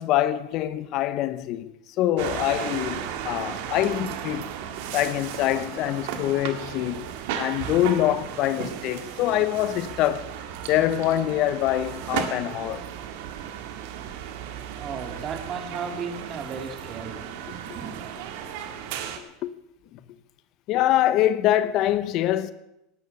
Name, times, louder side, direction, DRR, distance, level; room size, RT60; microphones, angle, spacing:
voice 1, 0.0-1.7 2.0-4.5 4.9-7.1 7.3-10.2 10.7-12.8 19.2-19.5 20.7-22.5, left 13 dB, 55° left, 0.9 m, -24 dB
sound 1, 2.2-19.2, right 9 dB, 65° right, 2.0 m, -35 dB
voice 2, 14.6-18.0, right 5 dB, 40° right, 2.8 m, -35 dB
18.0 x 11.0 x 6.7 m
hypercardioid pair, 90°, 0 cm